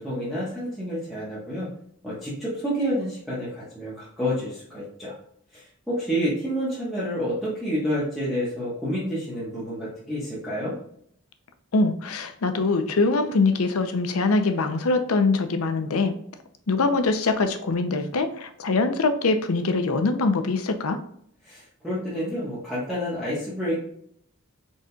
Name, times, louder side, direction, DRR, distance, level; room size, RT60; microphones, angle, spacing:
voice 1, 0.0-1.7 2.0-5.1 5.5-10.7 21.4-23.8, equal, ahead, -11 dB, 1.2 m, -29 dB
voice 2, 11.7-16.1 16.7-21.0, left 3 dB, 85° left, 8 dB, 0.6 m, -23 dB
5.0 x 4.0 x 2.3 m, 0.67 s
head